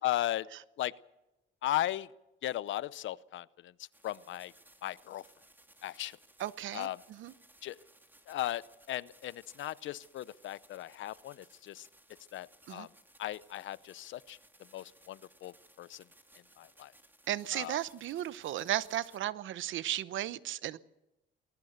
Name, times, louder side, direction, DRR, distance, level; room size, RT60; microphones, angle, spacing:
voice 1, 0.0-0.5 0.8-0.9 1.6-2.1 2.4-3.7 4.0-4.5 4.8-5.2 5.8-6.2 6.7-7.0 7.6-7.8 8.3-8.6 8.9-11.9 12.3-12.9 13.2-14.4 14.7-16.0 16.6-16.9 17.5-17.8, left 14 dB, 75° left, 0.7 m, -36 dB
sound 1, 3.9-19.2, right 1 dB, 10° right, 2.7 m, -62 dB
voice 2, 6.4-7.3 12.7-12.9 17.3-20.8, right 13 dB, 75° right, 0.9 m, -35 dB
20.5 x 19.0 x 6.7 m
cardioid pair, 90°, 20 cm